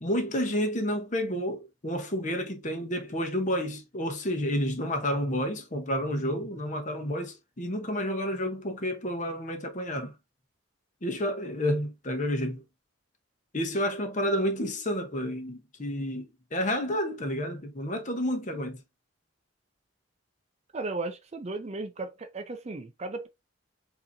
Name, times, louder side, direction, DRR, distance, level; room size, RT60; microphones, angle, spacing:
voice 1, 0.0-10.1 11.0-12.6 13.5-18.8, equal, 35° left, 0.9 m, -30 dB
voice 2, 20.7-23.3, right 3 dB, 30° right, 0.4 m, -35 dB
5.0 x 2.8 x 2.6 m
head